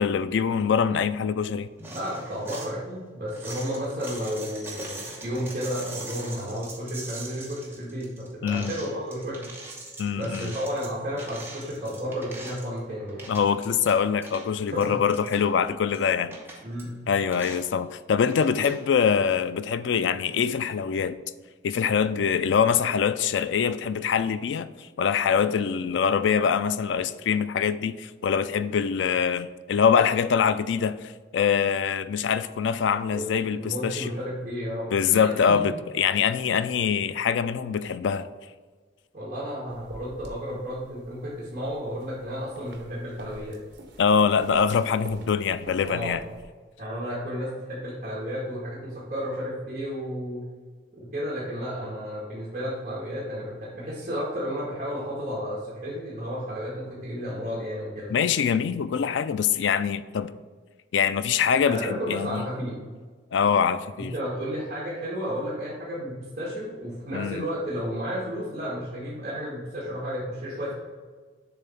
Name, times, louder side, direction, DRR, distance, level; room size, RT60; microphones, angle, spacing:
voice 1, 0.0-1.7 8.4-8.7 10.0-10.5 13.3-16.4 17.1-21.2 21.6-34.1 34.9-38.3 44.0-46.2 58.1-60.3 60.9-62.4 63.3-64.1 67.1-67.4, left 7 dB, 75° left, 0.4 m, -24 dB
sound 1, 1.8-2.7 3.3-12.8 13.1-13.9 14.2-15.5 15.9-16.0 16.3-16.8 17.3-17.7 18.3-18.8, right 2 dB, 10° right, 0.9 m, -41 dB
voice 2, 1.9-9.5 10.2-13.4 14.7-15.0 16.6-16.9 33.1-35.6 39.1-43.6 45.8-46.2 46.8-50.4 50.9-58.2 61.7-62.8 64.0-70.7, equal, 40° right, 1.7 m, -32 dB
sound 2, 39.7-46.4, right 2 dB, 70° right, 0.8 m, -47 dB
7.1 x 3.4 x 5.6 m
head